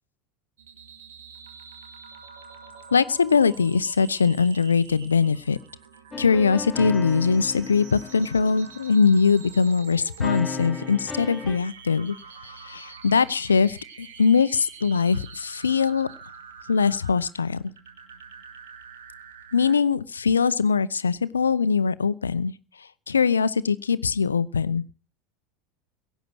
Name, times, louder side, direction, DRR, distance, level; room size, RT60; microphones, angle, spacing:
sound 1, 0.6-19.7, right 6 dB, 75° right, 2.2 m, -46 dB
voice 1, 2.9-5.6 6.2-12.1 12.4-16.1 16.7-17.6 19.5-22.5 23.1-24.8, left 5 dB, 85° left, 17 dB, 0.6 m, -22 dB
sound 2, 6.1-9.3 10.2-11.6, left 4 dB, 20° left, 1.7 m, -35 dB
16.5 x 9.1 x 6.2 m, 0.36 s
figure-of-eight pair, 80°, 0 cm